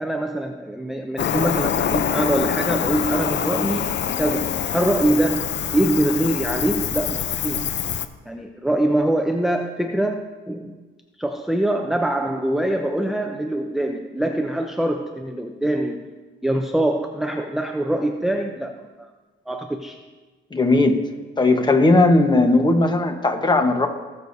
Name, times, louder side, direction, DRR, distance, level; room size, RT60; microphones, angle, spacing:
voice 1, 0.0-3.9 4.2-7.7 8.3-10.8 11.2-16.1 16.4-19.1 19.5-20.0, right 1 dB, ahead, 3 dB, 0.6 m, -24 dB
Cricket, 1.2-8.1, left 9 dB, 55° left, 0.6 m, -25 dB
voice 2, 20.5-21.0 21.4-23.9, left 2 dB, 20° left, 6 dB, 1.1 m, -17 dB
18.5 x 6.8 x 2.7 m, 1.3 s
cardioid pair, 110°, 21 cm